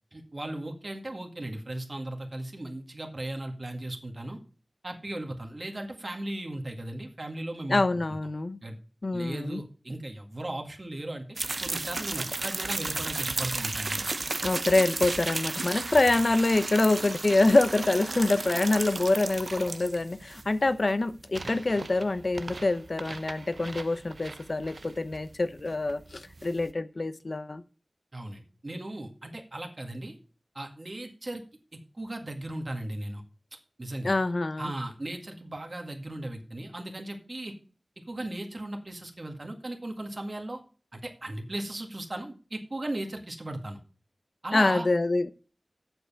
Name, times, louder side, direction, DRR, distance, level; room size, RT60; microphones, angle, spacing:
voice 1, 0.1-4.4 4.8-7.8 8.6-8.7 9.1-11.3 11.6-14.1 28.1-30.2 30.6-31.4 32.0-33.2 33.8-34.2 34.6-37.5 38.1-40.6 40.9-43.8 44.4-44.9, right 1 dB, 50° right, 3 dB, 2.0 m, -37 dB
voice 2, 7.7-8.6 9.0-9.6 14.4-27.6 34.0-34.7 44.5-45.3, left 2 dB, 65° left, 12 dB, 0.8 m, -25 dB
sound 1, 11.4-26.7, right 3 dB, 75° right, 0.7 m, -34 dB
8.0 x 7.0 x 7.0 m, 0.37 s
wide cardioid pair, 65°, 0 cm